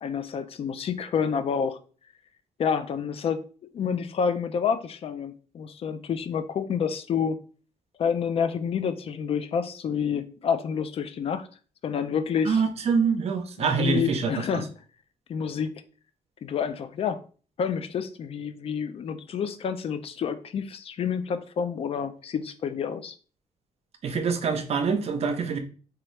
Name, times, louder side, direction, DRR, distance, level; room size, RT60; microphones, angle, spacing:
voice 1, 0.0-1.8 2.6-7.4 8.0-11.5 11.8-12.6 13.6-14.7 15.3-15.7 16.4-17.2 17.6-23.1, left 7 dB, 50° left, 11 dB, 0.3 m, -28 dB
voice 2, 12.5-14.3 24.0-25.6, right 5 dB, 55° right, 7 dB, 0.6 m, -25 dB
2.9 x 2.3 x 3.1 m, 0.39 s
cardioid pair, 105°, 13 cm